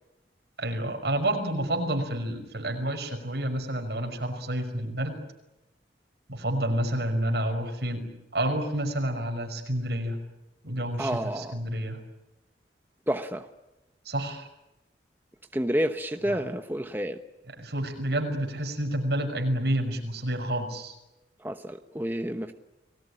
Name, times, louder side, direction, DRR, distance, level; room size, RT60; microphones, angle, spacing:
voice 1, 0.6-5.2 6.3-8.1 8.3-10.2 10.6-12.0 14.1-14.5 16.3-16.4 17.6-20.9, right 1 dB, 70° right, 4 dB, 5.8 m, -29 dB
voice 2, 11.0-11.6 13.1-13.5 15.5-17.2 21.4-22.5, equal, 10° right, 6 dB, 1.0 m, -29 dB
30.0 x 19.5 x 9.9 m, 0.96 s
head